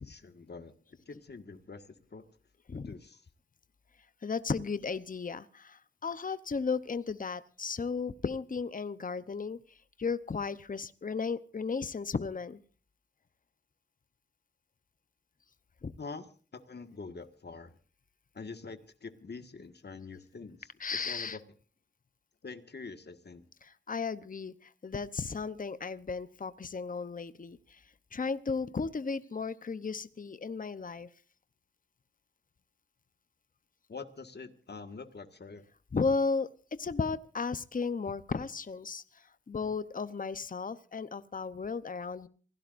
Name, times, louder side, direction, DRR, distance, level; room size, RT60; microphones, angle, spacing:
voice 1, 0.0-2.2 2.7-3.3 16.0-17.7 18.3-21.4 22.4-23.4 33.9-35.6, left 4 dB, 60° left, 8 dB, 1.7 m, -45 dB
voice 2, 4.2-9.6 10.0-12.6 15.8-15.9 20.8-21.4 23.6-27.8 28.1-31.1 35.9-36.5 36.8-42.3, left 4 dB, 45° left, 14 dB, 0.8 m, -35 dB
27.5 x 17.0 x 2.6 m, 0.41 s
cardioid pair, 50°, 19 cm